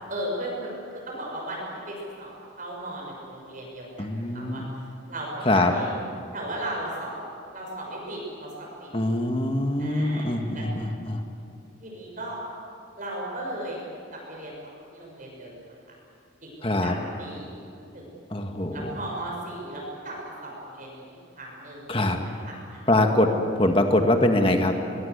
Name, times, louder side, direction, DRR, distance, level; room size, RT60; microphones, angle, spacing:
voice 1, 0.1-0.8 1.1-3.9 4.3-4.6 5.1-5.3 5.5-5.9 6.3-7.1 7.5-8.9 9.8-10.7 11.8-12.4 13.0-15.7 16.4-16.5 16.8-18.1 18.7-22.8, right 1 dB, 40° right, -3 dB, 6.5 m, -36 dB
voice 2, 4.0-4.7 5.4-5.7 8.9-11.2 16.6-16.9 18.3-19.0 21.9-22.2 22.9-23.3 23.6-24.8, left 1 dB, 25° left, 4 dB, 1.7 m, -23 dB
23.5 x 21.5 x 8.2 m, 2.7 s
head